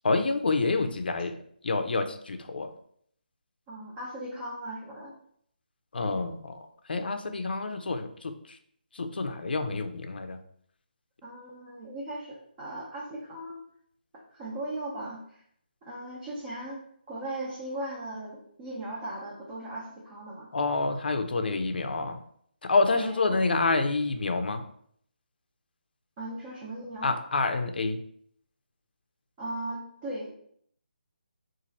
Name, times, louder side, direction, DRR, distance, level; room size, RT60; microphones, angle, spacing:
voice 1, 0.0-1.4 1.6-2.7 5.9-8.6 8.9-10.4 20.5-22.2 22.6-24.6 27.0-28.0, left 3 dB, 70° left, 7 dB, 0.4 m, -28 dB
voice 2, 3.7-5.1 11.2-13.6 14.3-15.4 15.8-16.8 17.1-20.5 22.9-23.2 26.2-27.1 29.4-30.3, right 1 dB, 20° right, -7 dB, 0.7 m, -38 dB
3.0 x 2.5 x 3.9 m, 0.66 s
hypercardioid pair, 165°, 5 cm